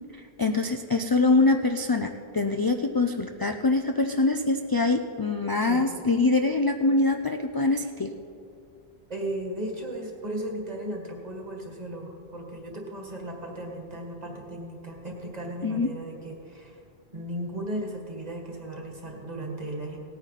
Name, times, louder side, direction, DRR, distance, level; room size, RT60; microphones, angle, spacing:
voice 1, 0.1-8.1 15.6-15.9, left 3 dB, 35° left, 5 dB, 0.3 m, -24 dB
voice 2, 9.1-16.8 17.1-20.0, right 1 dB, 40° right, 0 dB, 1.9 m, -36 dB
18.0 x 9.2 x 4.2 m, 2.5 s
omnidirectional pair, 1.0 m